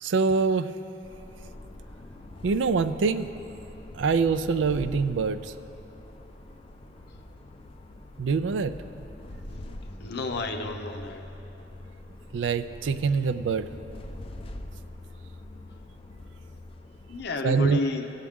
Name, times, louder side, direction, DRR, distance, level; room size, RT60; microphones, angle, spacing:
voice 1, 0.0-0.7 2.4-3.3 3.9-5.5 8.2-9.1 12.3-13.7 17.4-17.8, right 4 dB, 80° right, 12 dB, 0.4 m, -25 dB
sound 1, 1.0-17.3, left 1 dB, 30° left, 0.5 m, -44 dB
voice 2, 10.0-11.2 17.1-18.1, left 2 dB, 60° left, 5 dB, 0.7 m, -31 dB
16.5 x 7.2 x 3.6 m, 2.9 s
head